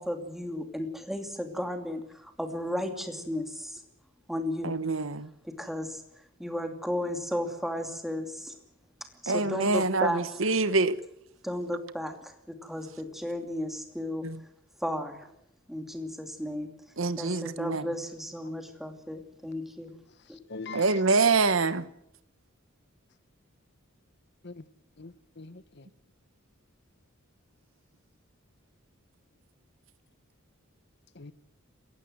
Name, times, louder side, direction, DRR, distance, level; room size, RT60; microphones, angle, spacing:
voice 1, 0.0-3.8 4.3-4.8 5.4-6.0 6.4-8.6 9.2-10.2 11.4-14.3 14.8-15.3 15.7-16.7 17.2-19.9 20.3-20.4, left 1 dB, ahead, 2.7 m, -34 dB
voice 2, 4.6-5.3 9.3-11.0 14.2-14.4 17.0-17.9 20.7-21.9, right 3 dB, 70° right, 1.2 m, -25 dB
voice 3, 20.5-21.0 24.4-24.6 25.0-25.9 31.1-31.3, left 3 dB, 55° left, 1.1 m, -43 dB
28.0 x 15.5 x 7.8 m
head